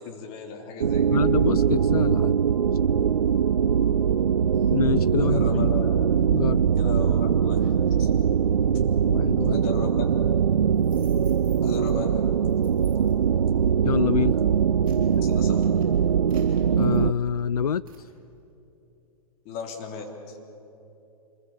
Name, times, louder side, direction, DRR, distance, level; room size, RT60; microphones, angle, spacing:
voice 1, 0.0-1.2 4.1-4.2 5.2-5.9 6.8-8.1 9.5-10.0 11.6-12.2 15.1-15.7 19.4-20.4, left 5 dB, 35° left, 2 dB, 3.5 m, -36 dB
sound 1, 0.8-17.1, right 8 dB, 75° right, 0.5 m, -22 dB
voice 2, 1.1-2.4 4.7-5.7 6.3-6.6 9.0-9.6 13.8-14.4 16.8-18.1, left 7 dB, 75° left, 18 dB, 0.4 m, -26 dB
sound 2, 10.7-11.9 12.5-13.2 13.9-14.1 14.5-17.4 17.9-18.1, right 8 dB, 25° right, 7.3 m, -55 dB
26.5 x 21.5 x 7.5 m, 2.9 s
figure-of-eight pair, 115°, 19 cm